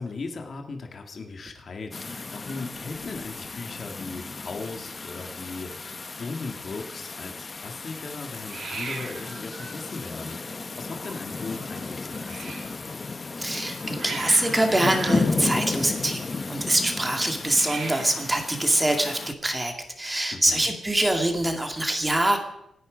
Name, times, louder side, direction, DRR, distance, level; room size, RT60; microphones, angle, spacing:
voice 1, 0.0-12.8 20.3-20.7, left 3 dB, 45° left, 4 dB, 2.0 m, -38 dB
sound 1, 1.9-19.3, left 3 dB, 30° left, 0.8 m, -34 dB
Hiss, 2.2-3.5 3.8-4.2 4.5-4.6 4.8-5.5 8.4-12.8 13.5-16.5 17.4-18.3, right 4 dB, 60° right, 2.9 m, -40 dB
voice 2, 13.3-22.4, right 1 dB, 15° right, 5 dB, 2.2 m, -24 dB
27.0 x 10.0 x 5.1 m, 0.78 s
wide cardioid pair, 130°, 0 cm